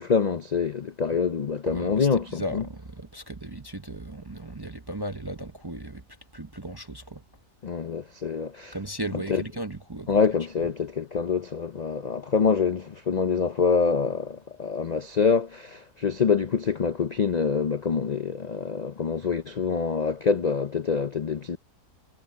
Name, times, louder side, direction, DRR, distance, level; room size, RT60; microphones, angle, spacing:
voice 1, 0.0-2.6 7.6-8.8 9.1-9.4 10.1-21.6, left 5 dB, 60° left, 0.4 m, -26 dB
voice 2, 1.7-6.0 6.3-7.2 8.7-10.1, right 1 dB, 25° right, 0.5 m, -36 dB
omnidirectional pair, 1.6 m